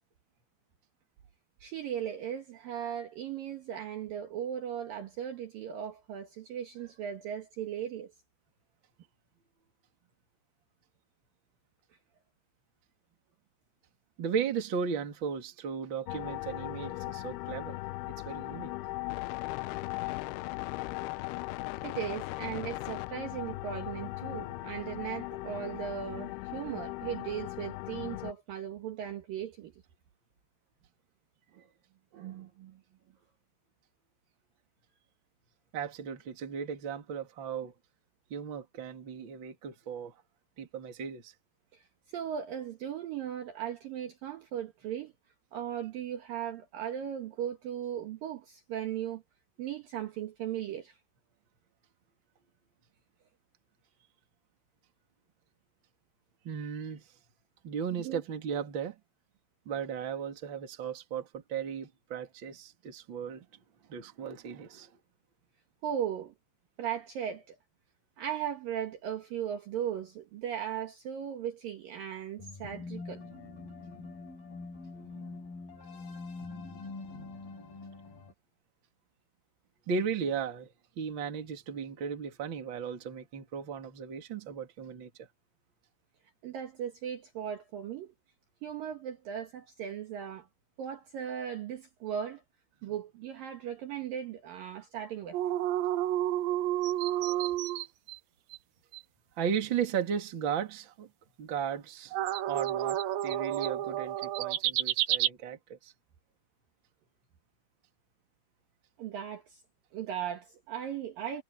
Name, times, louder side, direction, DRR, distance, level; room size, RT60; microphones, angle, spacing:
voice 1, 1.6-8.1 20.0-20.1 21.8-29.7 31.5-31.7 32.1-32.8 41.7-41.8 42.1-45.1 45.5-49.2 49.6-51.0 58.0-58.2 65.8-66.3 66.8-67.6 68.2-73.2 86.4-88.1 88.6-90.5 90.8-92.4 92.8-95.4 109.0-109.6 109.9-111.4, right 9 dB, 60° right, 2.7 m, -37 dB
voice 2, 14.2-17.8 18.2-18.7 35.7-37.7 38.3-40.1 40.6-41.3 56.4-57.0 57.6-59.0 59.7-63.5 63.9-64.9 75.0-75.1 79.9-80.7 81.0-85.3 99.4-101.1 101.4-102.1 102.5-105.9, right 7 dB, 35° right, 2.3 m, -36 dB
sound 1, 16.1-28.3, left 20 dB, 85° left, 2.2 m, -38 dB
sound 2, 72.4-78.3, left 3 dB, 50° left, 8.3 m, -44 dB
sound 3, 95.3-98.2 98.5-98.6 98.9-99.0 102.1-105.3, right 13 dB, 80° right, 2.1 m, -30 dB
omnidirectional pair, 5.2 m